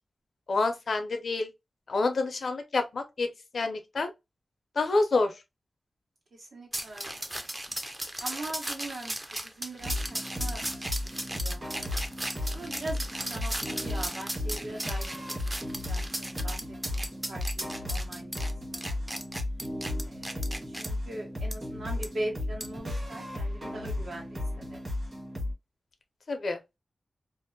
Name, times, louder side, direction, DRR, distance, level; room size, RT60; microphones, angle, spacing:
voice 1, 0.5-1.5 1.9-3.3 3.5-4.1 4.8-5.4 26.3-26.6, left 3 dB, 70° left, 0.5 m, -28 dB
voice 2, 6.4-7.3 8.2-10.8 11.4-11.6 12.5-16.6 16.9-18.4 18.7-19.2 20.0-24.8, right 1 dB, 80° right, 1.2 m, -41 dB
sound 1, 6.7-20.9 21.5-21.6 22.0-22.1 22.6-22.8, right 1 dB, 20° right, 0.4 m, -36 dB
sound 2, 9.8-25.5, left 1 dB, 45° right, 1.3 m, -35 dB
2.6 x 2.1 x 2.6 m
wide cardioid pair, 75°, 0 cm